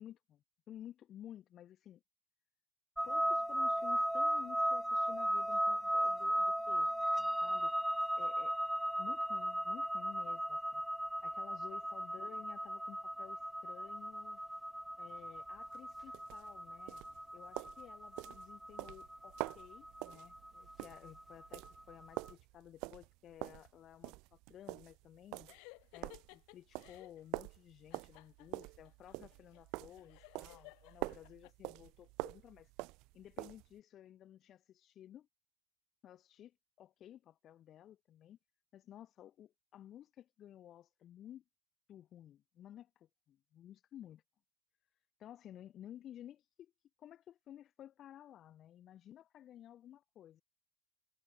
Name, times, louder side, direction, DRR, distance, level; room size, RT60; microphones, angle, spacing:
voice 1, 0.0-2.0 3.0-6.9 7.2-7.7 8.1-8.6 9.0-10.8 11.2-14.4 15.0-17.0 17.3-25.5 25.9-32.7 33.1-35.3 36.0-38.4 38.7-41.4 41.9-44.2 45.2-46.7 47.0-50.4, left 11 dB, 35° left, 3.0 m, -55 dB
sound 1, 3.0-22.0, equal, ahead, 0.3 m, -36 dB
sound 2, 15.3-33.7, right 25 dB, 50° right, 2.4 m, -46 dB
sound 3, 25.5-27.2 27.9-31.5, left 38 dB, 50° left, 3.3 m, -58 dB
figure-of-eight pair, 75°, 0 cm